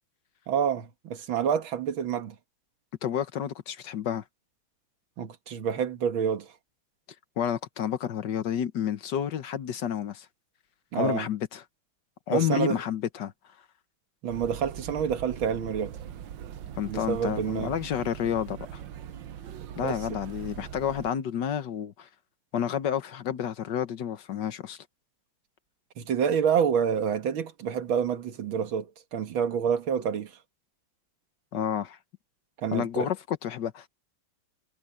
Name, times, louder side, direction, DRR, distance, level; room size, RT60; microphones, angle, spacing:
voice 1, 0.5-2.4 5.2-6.5 10.9-11.3 12.3-12.8 14.2-16.0 16.8-17.7 19.8-20.0 26.0-30.4 32.6-33.1, right 7 dB, 90° right, 2.3 m, -28 dB
voice 2, 3.0-4.2 7.4-10.3 10.9-11.6 12.3-13.3 16.8-18.8 19.8-22.1 22.5-24.8 31.5-32.0 32.7-33.9, left 9 dB, 65° left, 1.6 m, -30 dB
sound 1, 14.3-21.1, right 9 dB, 75° right, 1.6 m, -41 dB
omnidirectional pair, 2.1 m